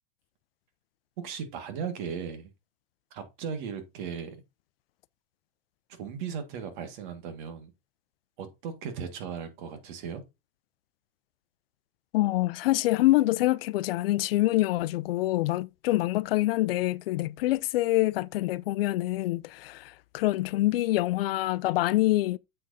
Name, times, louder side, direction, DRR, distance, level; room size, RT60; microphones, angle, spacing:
voice 1, 1.2-2.5 3.1-4.4 6.0-7.7 8.4-10.2, right 7 dB, 55° right, 1.8 m, -37 dB
voice 2, 12.1-22.4, left 17 dB, 75° left, 0.5 m, -26 dB
7.7 x 6.4 x 2.7 m
supercardioid pair, 160°, 29 cm